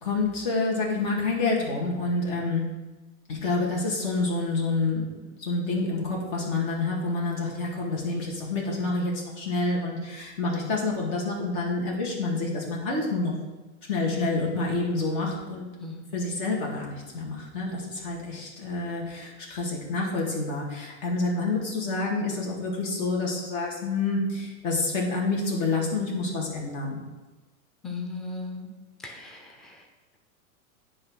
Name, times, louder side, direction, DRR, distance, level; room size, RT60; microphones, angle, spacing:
voice 1, 0.0-2.6 3.3-13.3 13.9-15.7 16.1-27.0, left 3 dB, 45° left, -2 dB, 2.1 m, -28 dB
voice 2, 27.8-28.7 29.0-29.8, left 3 dB, ahead, 1 dB, 0.5 m, -37 dB
9.6 x 3.3 x 6.3 m, 1.2 s
supercardioid pair, 135°, 43 cm